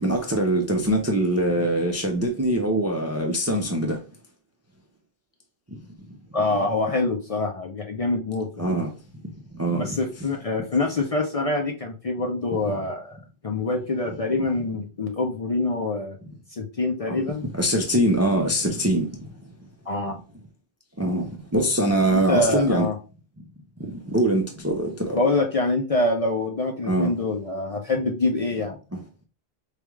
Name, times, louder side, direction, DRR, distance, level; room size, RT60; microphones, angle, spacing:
voice 1, 0.0-4.0 8.6-8.9 9.6-10.0 12.6-12.7 17.1-19.1 21.0-22.9 24.0-25.2 26.9-27.1, right 1 dB, 20° right, 0.4 m, -23 dB
voice 2, 6.3-8.7 9.8-13.2 13.4-16.2 16.5-17.4 19.9-20.2 22.1-22.9 25.1-28.8, left 2 dB, 45° left, 0.5 m, -25 dB
4.9 x 2.3 x 3.1 m
omnidirectional pair, 1.1 m